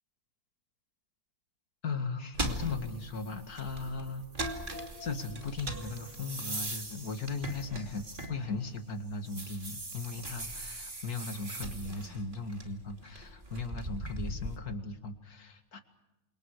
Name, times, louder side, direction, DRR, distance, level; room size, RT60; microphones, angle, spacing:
voice 1, 1.8-15.8, left 4 dB, 65° left, 8 dB, 2.5 m, -38 dB
sound 1, 2.3-8.8 9.1-14.6, right 1 dB, 30° right, 2.9 m, -40 dB
29.5 x 27.0 x 4.9 m, 0.99 s
omnidirectional pair, 1.7 m